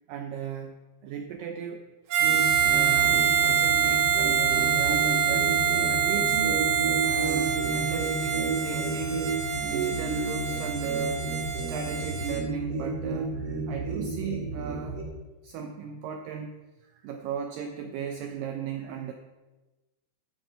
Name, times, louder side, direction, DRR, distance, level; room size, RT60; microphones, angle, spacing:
voice 1, 0.1-0.8 1.0-1.9 2.7-5.6 5.9-6.6 7.0-9.2 9.6-15.0 15.4-16.5 16.9-19.1, right 7 dB, 80° right, 5 dB, 2.0 m, -36 dB
Harmonica, 2.1-12.4, right 8 dB, 60° right, 3.0 m, -25 dB
sound 1, 2.2-15.0, right 3 dB, 45° right, 2.2 m, -32 dB
13.5 x 6.5 x 5.6 m, 1.1 s
omnidirectional pair, 4.8 m